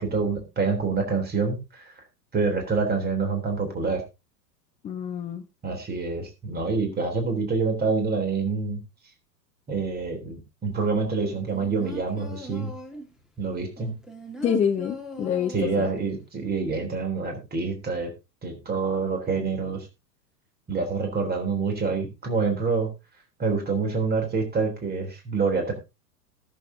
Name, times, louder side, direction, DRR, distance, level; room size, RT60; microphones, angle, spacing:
voice 1, 0.0-2.0 2.3-4.0 5.6-8.8 9.7-12.7 13.4-13.9 15.5-18.1 18.4-19.9 20.7-22.9 23.4-25.7, right 4 dB, 20° right, 4 dB, 3.4 m, -26 dB
voice 2, 4.8-5.4 14.4-15.9, left 7 dB, 15° left, 4 dB, 0.7 m, -26 dB
sound 1, 11.2-13.2 13.8-16.2 16.5-16.6, equal, ahead, 1.8 m, -41 dB
18.5 x 7.3 x 2.8 m, 0.26 s
figure-of-eight pair, 95°, 49 cm